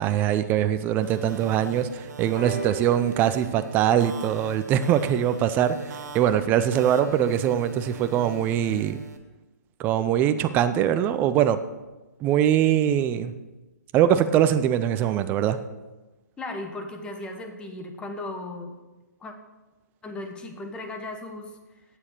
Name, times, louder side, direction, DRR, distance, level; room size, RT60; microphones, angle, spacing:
voice 1, 0.0-9.0 9.8-11.6 12.2-13.3 13.9-15.6, right 10 dB, 20° right, 11 dB, 0.5 m, -22 dB
sound 1, 1.0-9.2, right 5 dB, 60° right, 1.5 m, -42 dB
sound 2, 2.4-6.2 7.1-7.2, right 4 dB, 35° left, 3.8 m, -41 dB
voice 2, 16.4-18.7 19.2-19.3 20.0-21.8, left 2 dB, 10° left, 5 dB, 1.0 m, -36 dB
8.8 x 7.1 x 6.4 m, 1.1 s
hypercardioid pair, 140°, 10 cm